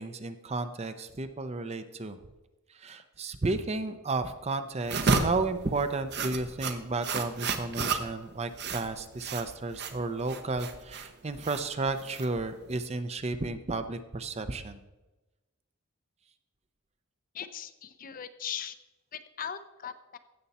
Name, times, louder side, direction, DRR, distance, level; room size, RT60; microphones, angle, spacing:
voice 1, 0.0-2.2 2.7-14.8, right 3 dB, 30° right, 10 dB, 0.6 m, -33 dB
sound 1, 4.8-12.8, right 4 dB, 50° right, 0.9 m, -32 dB
voice 2, 17.3-18.8 19.1-20.2, left 8 dB, 40° left, 11 dB, 0.6 m, -39 dB
16.0 x 6.9 x 4.2 m, 1.1 s
head